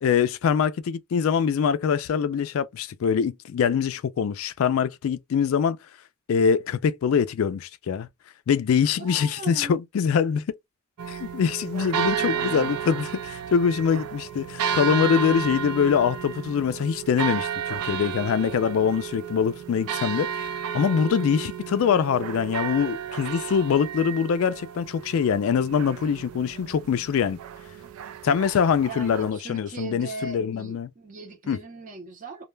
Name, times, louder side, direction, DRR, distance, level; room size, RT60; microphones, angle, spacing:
voice 1, 0.0-5.8 6.3-8.1 8.5-10.5 11.1-27.4 28.2-30.9 31.5-31.6, left 7 dB, 75° left, 0.3 m, -24 dB
voice 2, 9.0-9.8 12.2-12.7 21.2-21.5 28.9-32.4, right 3 dB, 35° right, 0.6 m, -39 dB
sound 1, 11.0-29.3, right 8 dB, 85° right, 0.4 m, -32 dB
2.2 x 2.1 x 3.1 m
head